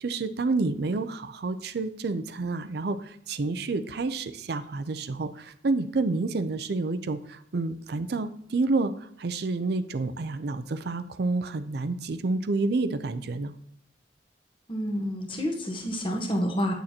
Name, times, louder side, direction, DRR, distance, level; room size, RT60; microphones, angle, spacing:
voice 1, 0.0-8.9 9.2-13.5, right 3 dB, 55° right, 11 dB, 0.5 m, -29 dB
voice 2, 14.7-16.7, equal, 25° left, 2 dB, 1.1 m, -29 dB
9.1 x 6.5 x 2.8 m, 0.71 s
head